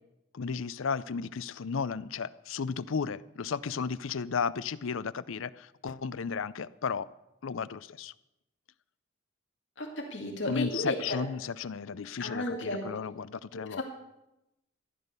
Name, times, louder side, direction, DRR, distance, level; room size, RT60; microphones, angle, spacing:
voice 1, 0.3-7.0 7.4-8.1 10.5-13.8, left 5 dB, 75° left, 17 dB, 0.5 m, -34 dB
voice 2, 9.8-11.2 12.2-12.9 13.5-13.8, left 1 dB, 60° left, 1 dB, 2.3 m, -34 dB
14.5 x 10.5 x 6.8 m, 0.92 s
head